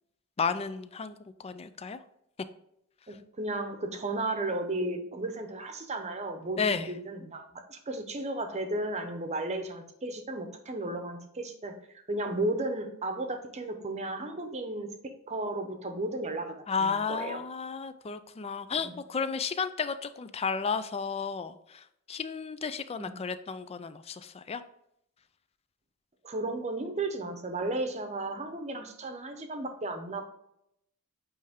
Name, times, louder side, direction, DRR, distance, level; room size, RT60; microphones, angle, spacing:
voice 1, 0.4-2.0 6.6-6.9 16.7-24.6, left 5 dB, 30° left, 12 dB, 0.4 m, -33 dB
voice 2, 3.1-11.7 12.1-14.9 15.3-16.6 16.8-17.4 18.8-18.9 23.0-23.1 26.2-30.3, right 2 dB, 30° right, 6 dB, 0.8 m, -34 dB
8.7 x 3.3 x 3.6 m, 0.77 s
head